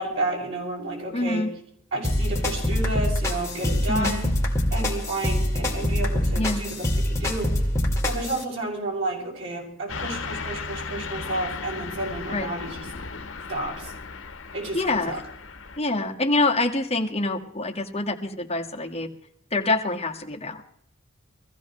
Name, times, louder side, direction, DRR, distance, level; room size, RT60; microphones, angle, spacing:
voice 1, 0.0-1.4 1.9-4.3 4.7-7.5 8.0-12.9 13.5-13.9 14.5-15.2, right 1 dB, 80° right, -4 dB, 7.1 m, -31 dB
voice 2, 1.1-1.5 3.9-4.1 6.4-6.6 12.3-12.5 14.7-15.2 15.8-19.1 19.5-20.6, left 2 dB, 30° left, 1 dB, 1.7 m, -26 dB
sound 1, 2.0-8.4, left 1 dB, 15° left, 2.3 m, -25 dB
Car passing by / Truck, 9.9-15.8, left 4 dB, 70° left, 1.1 m, -36 dB
23.0 x 15.5 x 3.2 m, 0.67 s
head